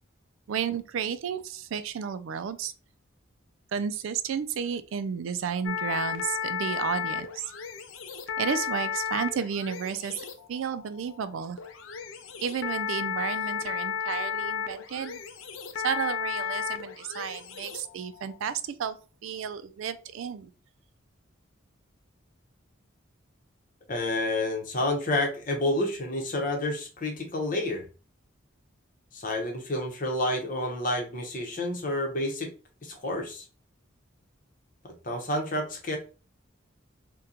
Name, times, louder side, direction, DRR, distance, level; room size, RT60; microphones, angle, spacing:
voice 1, 0.5-2.7 3.7-7.5 8.4-11.6 12.4-15.2 15.8-19.0 19.2-20.5, right 7 dB, 75° right, 0.3 m, -32 dB
sound 1, 5.6-18.5, left 7 dB, 75° left, 0.5 m, -34 dB
voice 2, 23.9-27.8 29.1-32.5 32.8-33.4 34.8-36.0, left 1 dB, 40° left, 0.8 m, -29 dB
2.8 x 2.2 x 3.7 m
head